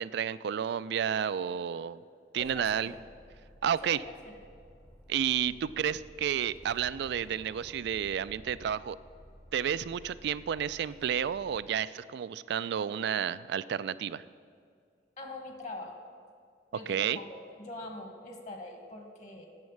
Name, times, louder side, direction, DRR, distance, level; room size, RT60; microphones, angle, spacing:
voice 1, 0.0-2.0 2.3-2.9 3.6-4.0 5.1-9.0 9.5-14.2 16.9-17.2, right 8 dB, 65° right, 17 dB, 0.3 m, -31 dB
voice 2, 2.4-3.0 3.8-4.3 15.2-15.9 16.7-19.5, left 2 dB, 45° left, 4 dB, 1.4 m, -43 dB
sound 1, 2.4-11.7, equal, 5° left, 0.7 m, -54 dB
9.4 x 7.4 x 7.2 m, 2.2 s
head